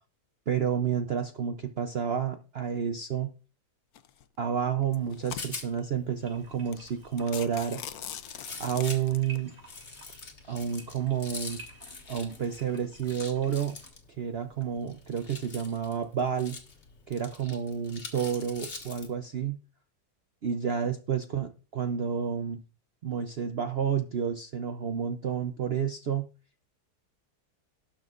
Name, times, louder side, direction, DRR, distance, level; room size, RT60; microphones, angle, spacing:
voice 1, 0.5-3.3 4.4-7.8 8.6-9.5 10.5-11.6 12.1-13.8 14.2-16.6 17.1-19.6 20.4-22.6 23.0-26.3, right 8 dB, 50° right, 7 dB, 0.8 m, -30 dB
sound 1, 3.9-4.2 4.8-5.8 6.4-6.5 6.7-6.9 7.2-9.4, left 11 dB, 70° left, 1.1 m, -41 dB
Rattle, 5.0-19.1, left 4 dB, 45° left, 1.8 m, -46 dB
sound 2, 6.2-13.9, right 2 dB, 30° right, 3.7 m, -54 dB
18.5 x 6.4 x 2.5 m, 0.35 s
omnidirectional pair, 1.7 m